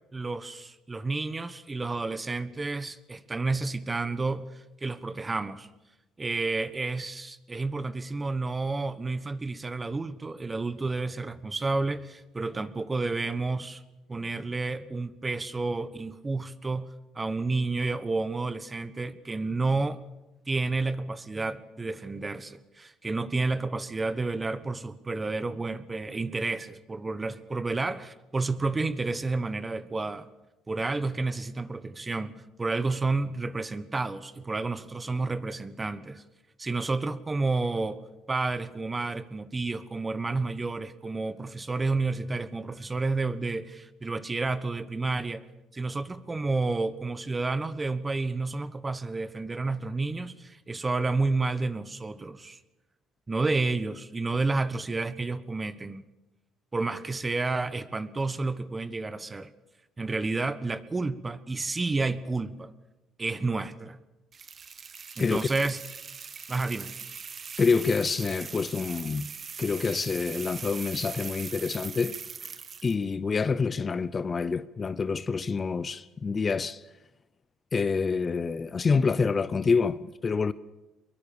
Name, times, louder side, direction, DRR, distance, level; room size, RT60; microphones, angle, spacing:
voice 1, 0.1-5.7 6.2-13.8 14.1-16.9 17.1-20.0 20.5-30.3 30.7-36.2 36.6-38.0 38.3-45.4 45.7-52.6 53.3-56.0 56.7-59.5 60.0-62.7 63.2-64.0 65.2-65.8 66.5-66.9, right 3 dB, 20° right, 1.3 m, -30 dB
sound 1, 64.3-73.0, right 6 dB, 40° right, 1.3 m, -41 dB
voice 2, 67.6-69.3 69.6-72.2 72.8-76.8 77.7-80.5, left 5 dB, 30° left, 0.7 m, -27 dB
24.0 x 22.0 x 7.0 m
cardioid pair, 100°, 0 cm